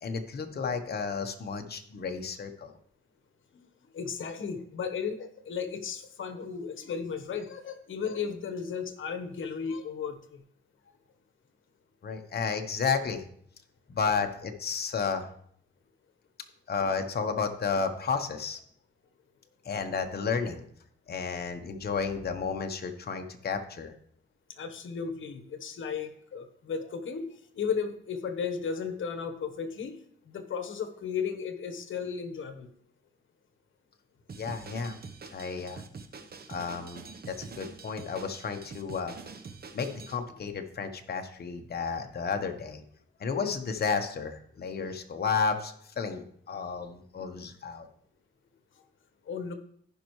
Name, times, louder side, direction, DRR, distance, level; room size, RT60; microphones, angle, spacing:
voice 1, 0.0-2.7 12.0-13.2 13.9-15.3 16.7-18.6 19.6-20.6 21.1-23.9 34.4-35.0 35.3-35.8 36.5-39.2 39.7-42.8 43.2-47.9, left 5 dB, 50° left, 5 dB, 1.0 m, -32 dB
voice 2, 3.9-10.4 24.6-27.2 27.5-30.0 30.3-32.7 49.3-49.5, left 6 dB, 75° left, 8 dB, 1.1 m, -35 dB
Drum kit, 34.3-40.2, right 4 dB, 50° right, 0.9 m, -45 dB
15.0 x 5.4 x 3.1 m, 0.62 s
cardioid pair, 85°, 20 cm